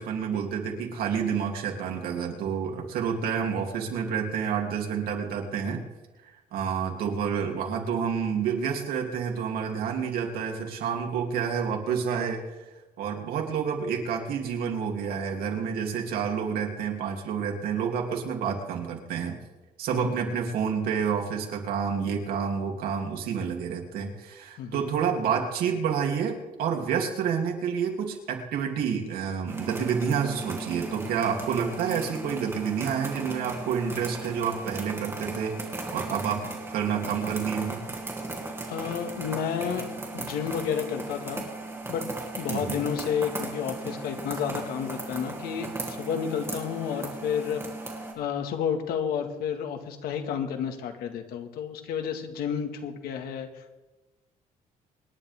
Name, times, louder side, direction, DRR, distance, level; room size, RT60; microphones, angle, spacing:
voice 1, 0.0-5.8 6.5-12.4 13.0-19.4 19.8-35.5 35.9-37.8 42.5-42.8, right 7 dB, 80° right, 1 dB, 3.0 m, -29 dB
sound 1, 29.5-48.1, right 2 dB, 15° right, 2.5 m, -36 dB
voice 2, 38.7-39.9 40.1-41.4 41.9-42.0 42.4-47.6 48.2-53.8, left 8 dB, 90° left, 6 dB, 1.9 m, -31 dB
26.0 x 11.0 x 3.6 m, 1.1 s
cardioid pair, 145°, 15 cm